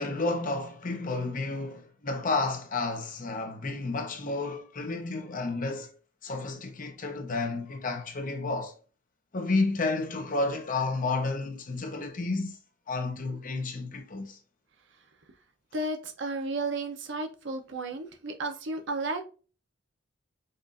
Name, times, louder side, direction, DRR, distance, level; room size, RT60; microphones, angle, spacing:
voice 1, 0.0-5.9 6.2-8.7 9.3-12.6 12.9-14.4, left 3 dB, 45° left, 0.8 m, -31 dB
voice 2, 15.7-19.2, right 2 dB, 65° right, 0.8 m, -33 dB
5.3 x 2.6 x 2.5 m
head